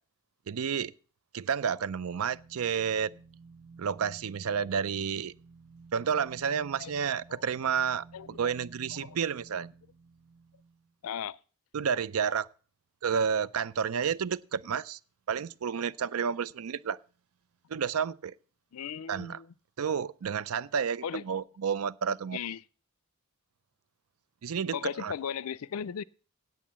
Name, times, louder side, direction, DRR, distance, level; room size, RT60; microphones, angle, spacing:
voice 1, 0.5-0.9 1.3-3.1 3.8-5.3 5.9-9.7 11.7-12.5 13.0-15.0 15.3-17.0 17.7-18.3 19.1-19.4 19.8-22.4 24.4-25.1, right 7 dB, 70° right, 0.5 m, -30 dB
sound 1, 2.3-10.9, right 4 dB, 35° right, 0.9 m, -54 dB
voice 2, 8.1-8.5 9.0-9.2 11.0-11.4 18.7-19.5 21.0-21.2 22.3-22.6 24.7-26.0, left 8 dB, 70° left, 0.4 m, -37 dB
8.7 x 8.3 x 7.3 m
head